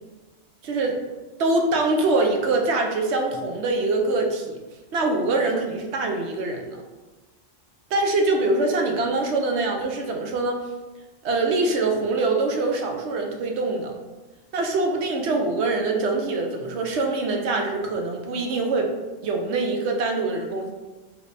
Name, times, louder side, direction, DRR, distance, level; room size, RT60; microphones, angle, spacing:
voice 1, 0.6-1.0 1.4-4.5 4.9-6.8 7.9-10.6 11.2-13.9 14.5-18.9 19.2-20.7, right 2 dB, 65° right, 2 dB, 0.9 m, -24 dB
5.0 x 3.2 x 2.7 m, 1.2 s
omnidirectional pair, 1.3 m